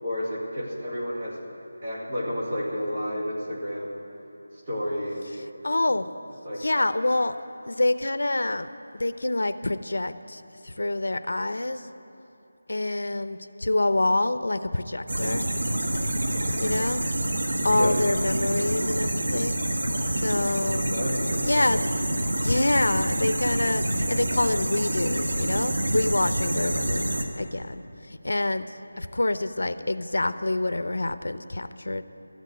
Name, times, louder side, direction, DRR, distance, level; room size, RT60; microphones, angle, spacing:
voice 1, 0.0-1.5 1.8-4.0 4.7-5.2 6.4-6.6 17.7-18.0 20.9-21.7, equal, 25° right, -5 dB, 1.9 m, -31 dB
voice 2, 5.6-6.1 6.6-7.4 7.7-11.9 12.7-15.4 16.6-17.0 17.6-19.6 20.2-21.0 21.5-21.8 22.4-32.0, left 2 dB, 80° left, 11 dB, 0.6 m, -26 dB
sound 1, 15.1-27.2, right 1 dB, 90° right, 1.3 m, -27 dB
13.0 x 8.2 x 9.2 m, 3.0 s
figure-of-eight pair, 180°, 0 cm